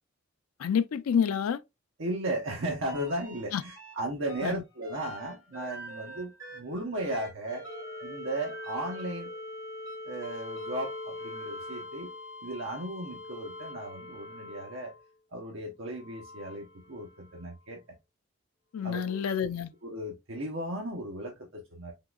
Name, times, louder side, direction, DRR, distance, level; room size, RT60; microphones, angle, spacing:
voice 1, 0.6-1.6 3.5-3.6 4.4-4.5 18.7-19.7, left 7 dB, 85° left, 0.4 m, -28 dB
voice 2, 2.0-7.7 8.0-9.3 10.0-12.1 12.4-14.9 15.3-17.8 18.8-19.2 19.8-21.9, right 1 dB, 65° right, 0.8 m, -36 dB
sound 1, 2.9-3.9 4.3-15.1 15.9-17.5 19.2-19.3, left 1 dB, 15° right, 1.8 m, -43 dB
3.7 x 2.9 x 2.3 m
head